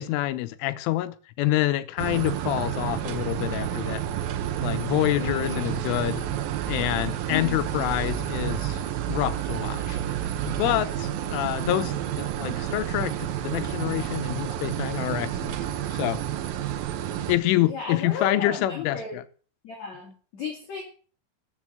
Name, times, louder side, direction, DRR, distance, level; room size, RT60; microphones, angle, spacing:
voice 1, 0.0-4.0 4.6-6.2 6.7-8.8 9.1-10.0 10.4-15.6 15.9-16.2 17.3-19.2, left 15 dB, 85° left, 3.3 m, -27 dB
sound 1, 2.0-17.4, right 11 dB, 90° right, 2.0 m, -30 dB
voice 2, 5.2-5.7 7.3-7.6 17.6-19.1 19.6-20.8, left 6 dB, 45° left, 3.1 m, -34 dB
13.5 x 7.6 x 7.6 m
omnidirectional pair, 5.8 m